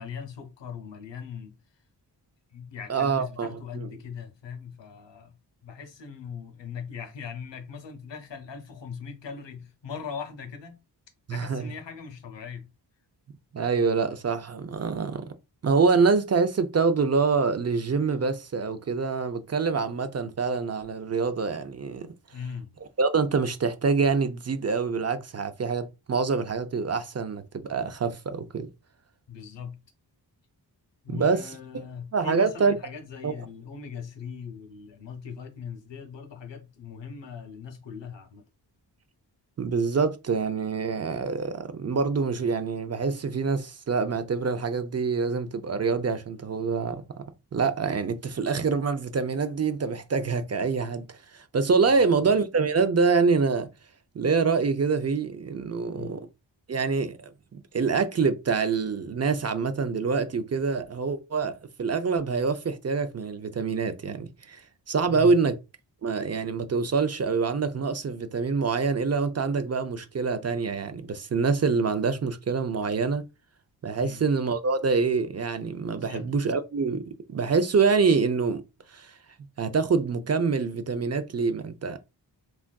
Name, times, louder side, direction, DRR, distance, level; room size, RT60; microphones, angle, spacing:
voice 1, 0.0-1.5 2.5-5.4 5.6-10.8 11.3-12.7 22.3-22.8 29.3-29.8 31.0-38.4 51.9-52.3 55.9-56.2 65.1-65.4 74.0-74.3 76.0-76.3, left 6 dB, 85° left, 0.7 m, -40 dB
voice 2, 2.9-3.5 3.7-3.9 11.3-11.6 13.5-15.2 15.6-22.1 23.0-28.7 31.1-31.4 32.1-32.8 33.2-33.3 39.6-47.2 47.5-51.0 51.3-53.7 54.2-56.2 56.7-65.5 66.0-73.2 73.8-78.6 78.9-79.1 79.6-82.0, right 4 dB, 40° right, 0.4 m, -26 dB
3.4 x 2.4 x 2.2 m
wide cardioid pair, 85°, 43 cm